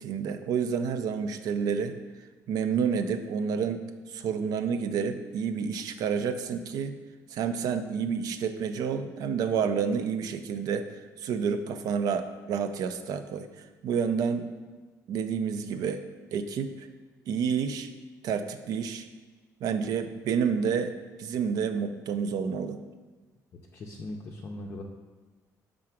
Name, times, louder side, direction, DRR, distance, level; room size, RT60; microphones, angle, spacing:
voice 1, 0.0-2.0 2.5-3.8 4.1-6.9 7.3-10.9 11.2-13.5 13.8-14.5 15.1-16.0 16.3-16.9 17.3-17.9 18.2-19.1 19.6-20.9 21.2-22.8, right 6 dB, 70° right, 9 dB, 0.5 m, -29 dB
voice 2, 23.7-24.8, left 1 dB, 40° left, -1 dB, 0.5 m, -39 dB
5.9 x 3.8 x 5.8 m, 1.3 s
cardioid pair, 150°, 7 cm